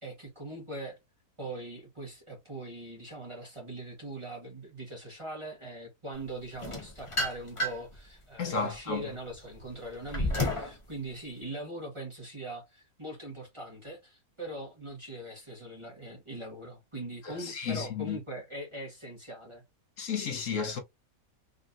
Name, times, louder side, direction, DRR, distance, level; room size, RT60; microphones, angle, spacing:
voice 1, 0.0-1.0 1.4-19.6, right 1 dB, 20° right, 1.4 m, -41 dB
sound 1, 6.6-8.0 8.5-10.8, left 1 dB, 25° left, 1.0 m, -32 dB
voice 2, 8.4-9.1 17.2-18.2 20.0-20.8, left 5 dB, 60° left, 1.2 m, -33 dB
3.9 x 3.2 x 2.6 m
omnidirectional pair, 1.6 m